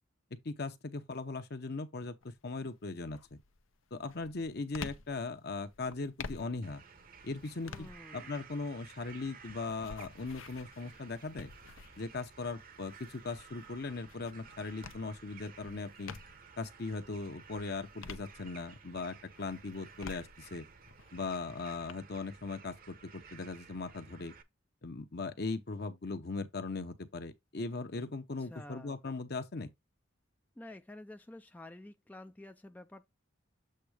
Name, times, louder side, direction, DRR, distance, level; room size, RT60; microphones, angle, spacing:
voice 1, 0.3-3.4 3.9-6.8 7.2-11.5 12.0-16.1 16.6-20.7 21.1-24.3 24.8-29.7, left 3 dB, 55° left, 0.8 m, -39 dB
sound 1, 2.2-2.6 3.1-16.6 17.1-18.9 19.3-21.9, left 5 dB, 85° left, 0.7 m, -50 dB
sound 2, 6.6-24.4, right 6 dB, 45° right, 0.8 m, -55 dB
voice 2, 7.6-8.3 28.4-29.0 30.6-33.1, left 1 dB, 10° left, 0.3 m, -50 dB
7.7 x 2.7 x 4.8 m
head